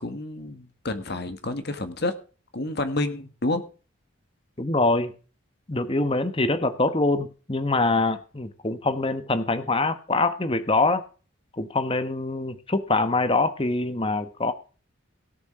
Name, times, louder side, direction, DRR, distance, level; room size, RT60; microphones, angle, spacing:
voice 1, 0.0-2.1 2.5-3.6, left 2 dB, 50° left, 10 dB, 1.5 m, -29 dB
voice 2, 4.6-5.1 5.7-11.0 11.5-14.5, left 2 dB, 25° left, 11 dB, 1.2 m, -24 dB
17.5 x 7.2 x 4.7 m, 0.36 s
head